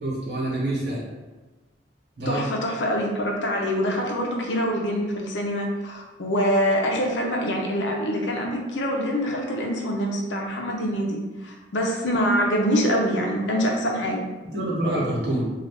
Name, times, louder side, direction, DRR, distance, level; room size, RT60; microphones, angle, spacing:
voice 1, 0.0-1.0 2.2-2.4 14.5-15.4, right 1 dB, 70° right, -7 dB, 1.2 m, -26 dB
voice 2, 2.3-14.2, equal, 90° left, 0 dB, 0.6 m, -25 dB
2.5 x 2.4 x 3.5 m, 1.2 s
head